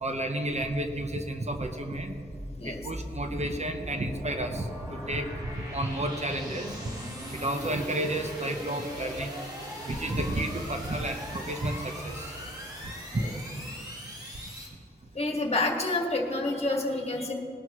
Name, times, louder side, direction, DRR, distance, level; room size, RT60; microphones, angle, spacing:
voice 1, 0.0-2.2 2.6-6.8 7.3-9.4 9.8-12.3 13.1-13.2, right 1 dB, 40° right, 5 dB, 1.0 m, -31 dB
sound 1, 1.2-14.7, equal, 25° right, 3.9 m, -40 dB
voice 2, 15.1-17.3, left 2 dB, 35° left, 1 dB, 1.9 m, -28 dB
19.5 x 12.0 x 3.1 m, 2.4 s
wide cardioid pair, 100°, 17 cm